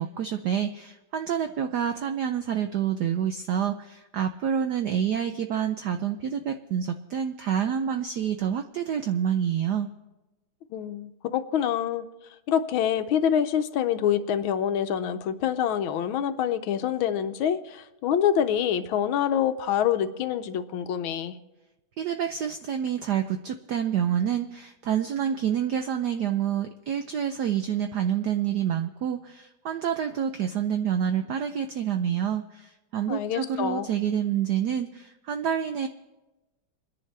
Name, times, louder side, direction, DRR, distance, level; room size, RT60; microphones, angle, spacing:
voice 1, 0.0-9.9 22.0-35.9, right 9 dB, 80° right, 7 dB, 0.9 m, -28 dB
voice 2, 10.7-12.1 12.5-21.4 33.1-33.9, left 9 dB, 75° left, 9 dB, 1.4 m, -26 dB
29.0 x 10.5 x 3.3 m, 1.1 s
omnidirectional pair, 2.4 m